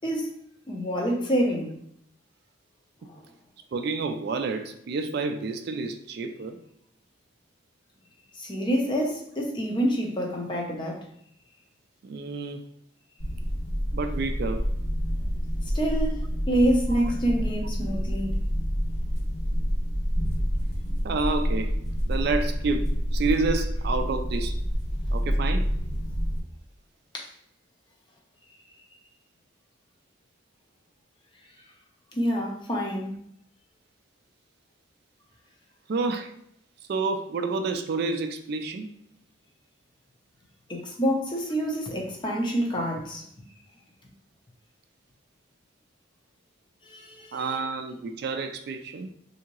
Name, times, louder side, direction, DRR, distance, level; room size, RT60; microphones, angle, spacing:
voice 1, 0.0-0.3 0.7-1.8 3.1-3.2 8.4-11.1 15.7-18.3 27.1-27.3 32.1-33.1 40.7-43.2 46.8-47.4, equal, 25° left, 0.6 m, -27 dB
voice 2, 3.7-6.6 12.0-12.6 13.9-14.7 16.9-17.0 17.3-17.4 21.0-21.8 22.1-24.6 25.1-25.7 35.9-36.3 36.9-38.9 47.3-49.1, right 3 dB, 50° right, 0.3 m, -29 dB
sound 1, 13.2-26.4, equal, 80° left, 1.3 m, -28 dB
3.5 x 2.7 x 3.0 m
head